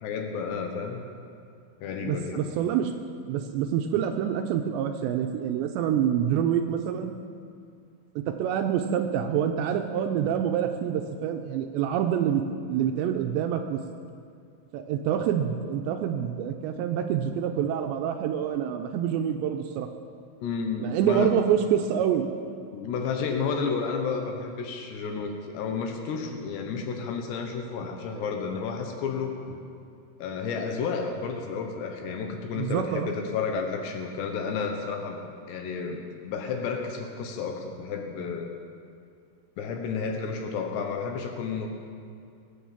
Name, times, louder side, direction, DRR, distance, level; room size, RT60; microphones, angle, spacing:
voice 1, 0.0-1.0 1.8-2.4 20.4-21.4 22.7-29.6 30.2-38.5 39.6-41.7, left 5 dB, 70° left, 4 dB, 3.1 m, -31 dB
voice 2, 2.0-2.9 3.3-7.1 8.2-12.4 12.7-13.8 14.7-19.9 20.8-22.3 28.1-28.3 32.6-33.1, right 9 dB, 85° right, 5 dB, 2.7 m, -26 dB
21.5 x 9.3 x 7.3 m, 2.3 s
omnidirectional pair, 5.5 m